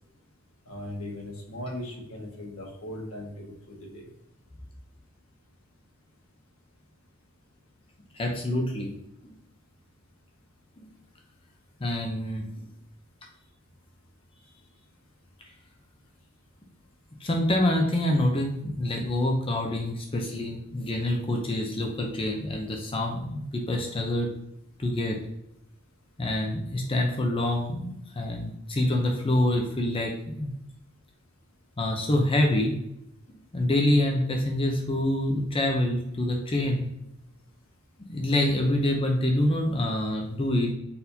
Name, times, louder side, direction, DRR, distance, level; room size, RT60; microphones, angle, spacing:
voice 1, 0.6-4.1, left 1 dB, 80° left, -1 dB, 1.3 m, -38 dB
voice 2, 8.1-9.0 11.8-12.5 17.2-24.3 24.8-25.2 26.2-30.5 31.8-32.8 33.5-36.9 38.1-40.7, left 1 dB, 25° left, 2 dB, 0.6 m, -26 dB
4.2 x 4.1 x 2.7 m, 0.81 s
head